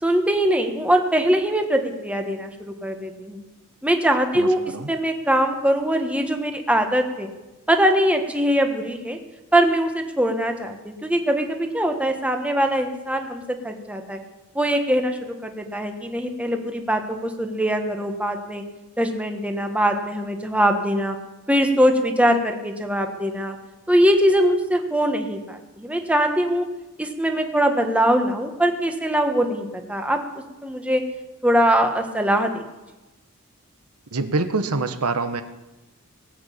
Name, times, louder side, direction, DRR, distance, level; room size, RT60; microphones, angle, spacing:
voice 1, 0.0-3.4 3.8-4.6 4.9-7.3 7.7-9.2 9.5-14.2 14.5-18.6 19.0-21.2 21.5-23.6 23.9-26.6 27.0-30.2 30.6-31.0 31.4-32.6, equal, 5° right, 4 dB, 1.4 m, -22 dB
voice 2, 4.3-4.9 34.1-35.4, right 3 dB, 85° right, 9 dB, 1.1 m, -25 dB
19.0 x 8.0 x 8.5 m, 1.1 s
head